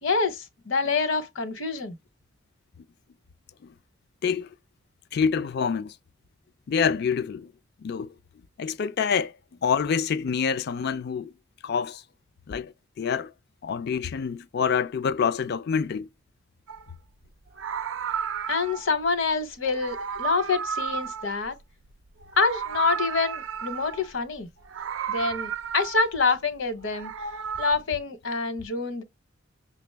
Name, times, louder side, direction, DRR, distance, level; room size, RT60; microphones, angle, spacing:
voice 1, 0.0-2.0 18.5-21.6 22.4-24.5 25.1-27.1 27.6-29.0, left 4 dB, 70° left, 0.9 m, -26 dB
voice 2, 5.1-6.0 6.7-7.5 7.8-8.1 8.6-11.3 11.6-12.0 12.5-13.3 13.6-16.1, left 6 dB, 55° left, 0.4 m, -27 dB
Meow, 16.7-16.9 17.5-18.9 19.6-21.9 22.2-24.1 24.6-26.2 26.8-27.7, right 7 dB, 70° right, 0.4 m, -33 dB
6.0 x 2.0 x 3.3 m
head